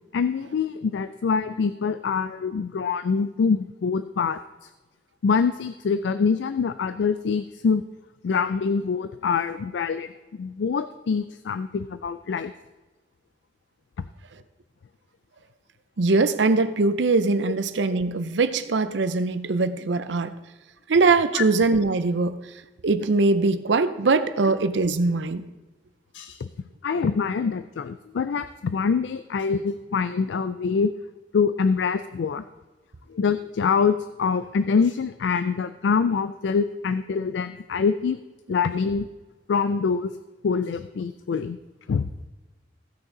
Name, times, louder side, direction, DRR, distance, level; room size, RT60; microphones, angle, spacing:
voice 1, 0.1-4.4 5.2-7.8 8.2-12.5 21.3-21.4 26.1-26.5 26.8-30.9 31.3-32.4 33.1-38.2 38.5-39.1 39.5-40.1 40.4-41.6 41.9-42.1, left 5 dB, 80° left, 12 dB, 0.4 m, -25 dB
voice 2, 16.0-20.3 20.9-22.4 22.8-25.4, right 3 dB, 90° right, 12 dB, 0.6 m, -22 dB
16.0 x 6.1 x 3.8 m, 1.1 s
head